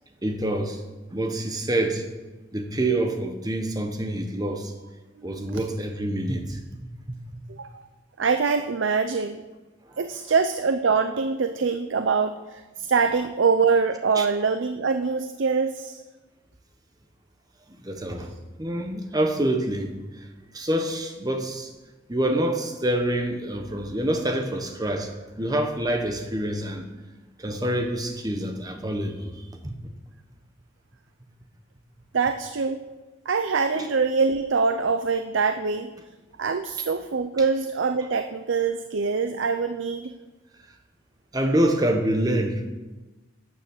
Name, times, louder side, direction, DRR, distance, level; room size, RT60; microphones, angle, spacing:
voice 1, 0.2-0.8 1.1-2.1 2.5-4.7 5.2-6.6 7.1-7.2 14.1-14.3 17.8-18.3 18.6-20.3 20.5-21.7 22.1-25.1 25.4-26.9 27.4-29.8 33.7-33.9 41.3-42.6, right 1 dB, 20° right, 5 dB, 1.1 m, -26 dB
voice 2, 7.5-7.8 8.2-9.4 10.0-16.0 32.1-32.8 33.3-35.9 36.4-40.1, right 5 dB, 80° right, 9 dB, 0.5 m, -24 dB
12.0 x 7.0 x 7.2 m, 1.2 s
head